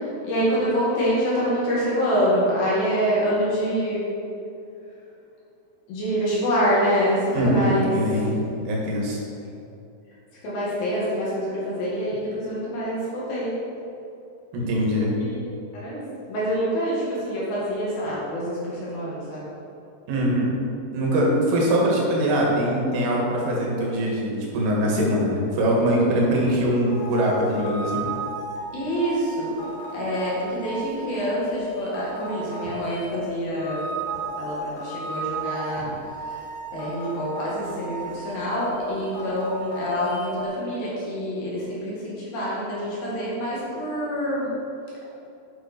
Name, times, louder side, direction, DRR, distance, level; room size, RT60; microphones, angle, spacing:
voice 1, 0.2-4.0 5.9-7.9 10.4-13.6 15.2-15.4 15.7-16.0 16.3-19.5 28.7-29.6 29.9-33.9 34.4-35.9 36.7-44.5, equal, 55° left, -7 dB, 3.3 m, -26 dB
voice 2, 7.4-9.2 14.5-15.1 20.1-20.5 20.9-28.0, equal, 80° right, -3 dB, 4.3 m, -22 dB
sound 1, 26.9-40.4, right 2 dB, 75° left, 1.7 m, -34 dB
8.7 x 8.1 x 4.5 m, 2.7 s
omnidirectional pair, 5.6 m